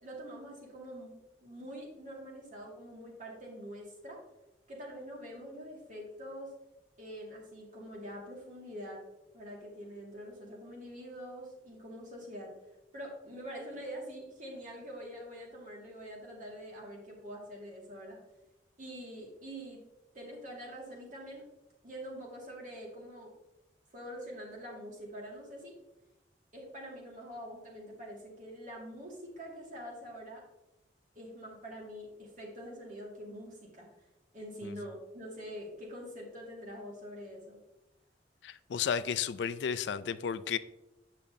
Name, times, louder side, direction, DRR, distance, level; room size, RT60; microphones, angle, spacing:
voice 1, 0.0-4.2 4.7-6.5 7.0-9.0 9.3-12.5 12.9-18.2 18.8-19.8 20.1-21.5 21.8-23.3 23.9-25.7 26.5-30.4 31.2-33.9 34.3-37.6, equal, 45° right, -2 dB, 2.0 m, -45 dB
voice 2, 38.4-40.6, left 7 dB, 75° left, 14 dB, 0.4 m, -33 dB
8.4 x 6.3 x 2.7 m, 0.93 s
head